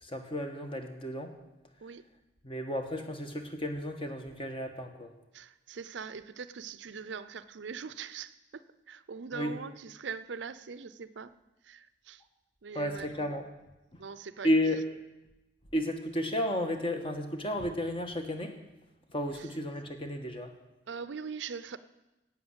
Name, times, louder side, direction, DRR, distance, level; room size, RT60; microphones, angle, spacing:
voice 1, 0.0-1.3 2.4-5.1 9.3-9.5 12.7-13.4 14.4-14.8 15.7-18.5 19.1-20.5, equal, 30° left, 5 dB, 1.4 m, -32 dB
voice 2, 5.3-11.3 11.6-12.2 12.6-13.3 14.0-14.6 19.3-19.5 20.9-21.8, right 5 dB, 80° right, 15 dB, 0.6 m, -42 dB
12.0 x 8.6 x 8.1 m, 1.0 s
head